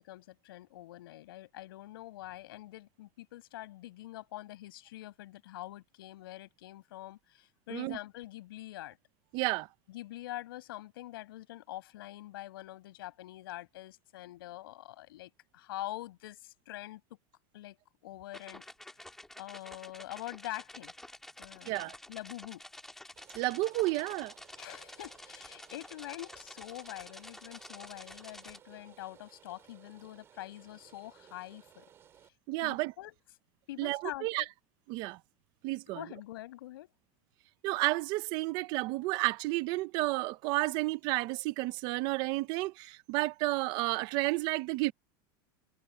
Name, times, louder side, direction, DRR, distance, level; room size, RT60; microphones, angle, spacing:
voice 1, 0.0-9.0 9.9-17.2 17.5-17.8 18.0-18.6 19.4-20.9 21.4-22.6 24.6-31.8 32.6-33.2 33.7-34.5 35.9-36.9, left 16 dB, 85° left, 7.6 m, -45 dB
voice 2, 9.3-9.7 21.7-21.9 23.3-24.3 32.5-32.9 33.8-34.4 34.9-35.2 35.6-36.0 37.6-44.9, right 20 dB, 35° right, 0.7 m, -31 dB
sound 1, 18.3-28.6, left 1 dB, 5° left, 1.7 m, -50 dB
Rain, 23.2-32.3, right 9 dB, 20° right, 5.7 m, -59 dB
supercardioid pair, 180°, 12 cm